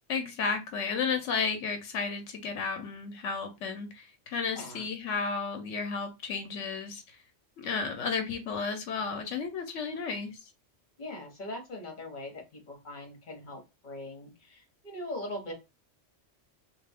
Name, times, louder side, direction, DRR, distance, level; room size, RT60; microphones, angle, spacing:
voice 1, 0.1-7.0 7.6-10.3, left 5 dB, 85° left, 1.0 m, -33 dB
voice 2, 11.0-15.5, left 1 dB, 40° left, 1.2 m, -41 dB
3.2 x 2.4 x 3.4 m
omnidirectional pair, 1.2 m